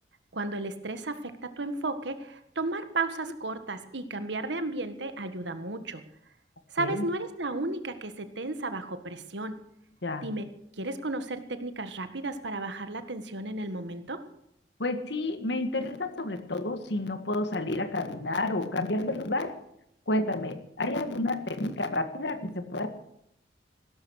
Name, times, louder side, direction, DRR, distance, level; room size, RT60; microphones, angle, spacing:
voice 1, 0.3-6.0 6.7-9.6 10.2-10.5 10.8-14.2, right 2 dB, 75° right, 10 dB, 1.6 m, -33 dB
voice 2, 14.8-19.5 20.1-22.9, left 2 dB, 70° left, 9 dB, 1.7 m, -30 dB
16.0 x 13.0 x 6.5 m, 0.78 s
head